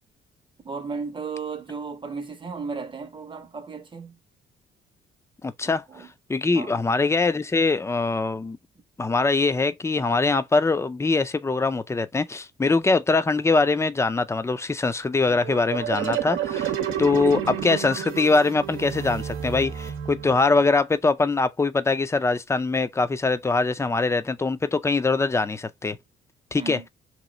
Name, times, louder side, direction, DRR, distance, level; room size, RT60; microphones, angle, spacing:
voice 1, 0.6-4.2 5.6-6.1 6.5-6.8 17.1-17.2 26.5-26.9, right 5 dB, 25° right, 0.7 m, -35 dB
voice 2, 5.4-5.8 6.3-8.6 9.0-16.7 17.0-26.0 26.5-26.8, left 3 dB, 15° left, 0.4 m, -23 dB
sound 1, 15.2-20.6, right 9 dB, 80° right, 0.8 m, -30 dB
3.0 x 2.3 x 3.8 m
cardioid pair, 90°, 20 cm